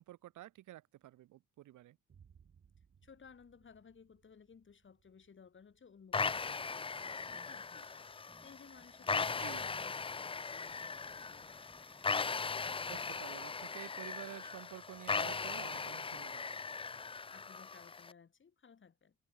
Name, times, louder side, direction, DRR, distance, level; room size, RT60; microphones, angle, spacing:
voice 1, 0.0-2.0 9.4-9.7 12.9-16.4, right 15 dB, 80° right, 2.0 m, -50 dB
Boom, 2.1-9.9, right 7 dB, 45° right, 4.7 m, -69 dB
voice 2, 3.0-11.6 17.3-19.2, left 6 dB, 40° left, 4.0 m, -60 dB
sound 1, 6.1-18.1, left 4 dB, 20° left, 0.5 m, -39 dB
sound 2, 6.9-14.3, right 1 dB, 5° right, 3.0 m, -67 dB
cardioid pair, 90°, 30 cm